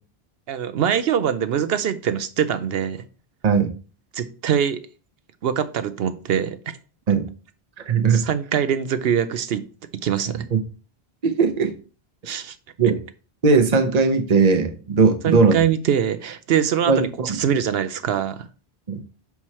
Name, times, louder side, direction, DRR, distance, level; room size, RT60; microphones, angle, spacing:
voice 1, 0.5-3.1 4.1-4.8 5.4-6.6 8.1-9.6 9.9-10.4 12.2-12.6 15.2-18.5, right 8 dB, 70° right, 11 dB, 0.8 m, -23 dB
voice 2, 7.9-8.2 10.5-10.6 11.2-11.7 12.3-12.4 12.8-13.0 13.4-15.6 16.9-17.4 18.9-19.0, right 4 dB, 45° right, 6 dB, 0.9 m, -18 dB
6.1 x 4.7 x 4.3 m, 0.37 s
omnidirectional pair, 1.1 m